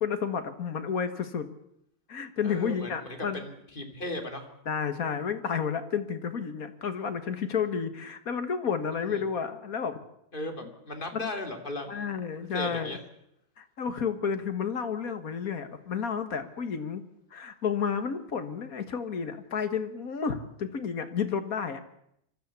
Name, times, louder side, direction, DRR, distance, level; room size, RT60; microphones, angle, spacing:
voice 1, 0.0-1.5 2.1-3.4 4.7-10.0 11.1-11.3 11.9-13.0 13.6-17.0 17.3-21.8, left 6 dB, 55° left, 9 dB, 2.0 m, -31 dB
voice 2, 2.4-4.5 8.9-9.2 10.3-13.0, left 1 dB, 30° left, 4 dB, 2.8 m, -37 dB
24.5 x 13.5 x 8.3 m, 0.75 s
omnidirectional pair, 1.8 m